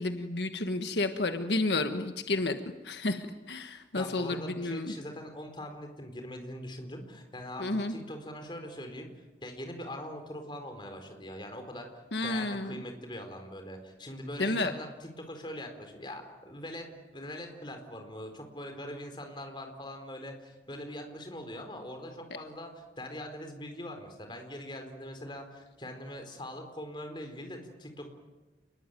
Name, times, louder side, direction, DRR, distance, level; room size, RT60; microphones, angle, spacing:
voice 1, 0.0-2.6 2.8-4.9 7.6-7.9 12.1-12.7 14.4-14.7, left 2 dB, 75° left, 7 dB, 1.5 m, -31 dB
voice 2, 3.9-9.1 9.4-11.9 12.2-16.9 17.1-28.1, left 1 dB, 25° left, 5 dB, 4.5 m, -42 dB
29.5 x 21.0 x 9.2 m, 1.2 s
head